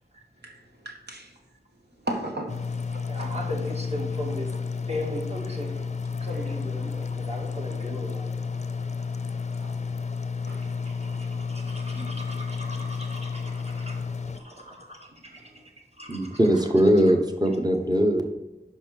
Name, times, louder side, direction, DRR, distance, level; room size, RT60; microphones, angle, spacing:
voice 1, 0.4-1.4 1.9-3.2 6.3-6.4 9.6-9.8 10.3-11.5 11.9-12.3 12.7-13.0 15.2-15.7 16.0-16.1 17.5-17.6, right 1 dB, 80° right, 1.5 m, -39 dB
sound 1, 2.5-14.4, left 5 dB, 45° left, 0.5 m, -31 dB
voice 2, 3.1-5.9 6.2-8.4 10.6-16.4, left 1 dB, 40° right, 2.0 m, -38 dB
voice 3, 16.1-18.2, equal, 25° right, 1.1 m, -21 dB
5.6 x 5.2 x 6.4 m
wide cardioid pair, 50°, 17 cm